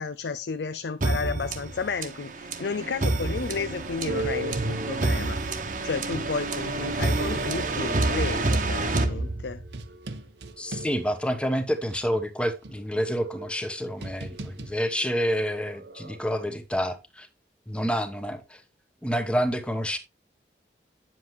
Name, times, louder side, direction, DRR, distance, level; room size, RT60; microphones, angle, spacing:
voice 1, 0.0-5.4 5.8-9.6, left 4 dB, 75° left, 0.5 m, -32 dB
sound 1, 1.0-9.8, right 2 dB, 50° right, 1.1 m, -28 dB
sound 2, 4.1-6.4 7.1-11.5 11.9-12.0 12.6-16.2, right 2 dB, 75° right, 0.9 m, -37 dB
voice 2, 10.6-17.3 17.7-18.6 19.0-20.0, equal, 5° left, 1.0 m, -28 dB
9.4 x 7.5 x 3.1 m
head